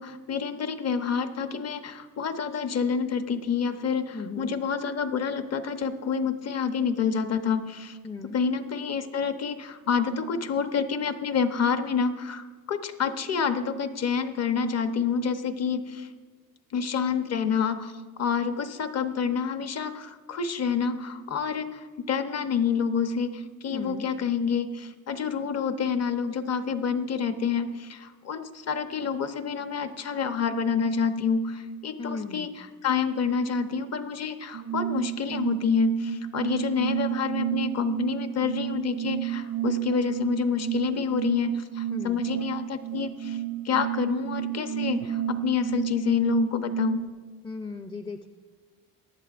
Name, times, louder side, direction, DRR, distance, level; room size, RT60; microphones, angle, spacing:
voice 1, 0.0-8.0 8.3-16.1 16.7-17.9 18.2-43.4 43.6-47.0, left 6 dB, 45° left, 9 dB, 1.0 m, -28 dB
voice 2, 4.1-4.5 8.0-8.3 23.7-24.1 32.0-32.5 41.9-42.2 47.4-48.3, left 3 dB, 15° left, 7 dB, 0.5 m, -36 dB
sound 1, 34.5-47.1, right 13 dB, 60° right, 0.5 m, -31 dB
18.5 x 11.5 x 2.5 m, 1.4 s
cardioid pair, 115°, 36 cm